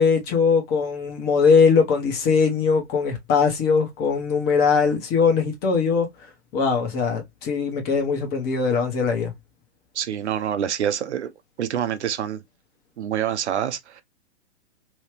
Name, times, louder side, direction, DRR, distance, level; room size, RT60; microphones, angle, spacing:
voice 1, 0.0-6.1 6.5-9.3, left 5 dB, 30° left, 1.3 m, -21 dB
voice 2, 9.9-11.3 11.6-12.4 13.0-14.0, right 9 dB, 80° right, 0.8 m, -26 dB
3.1 x 2.7 x 3.3 m
hypercardioid pair, 130°, 34 cm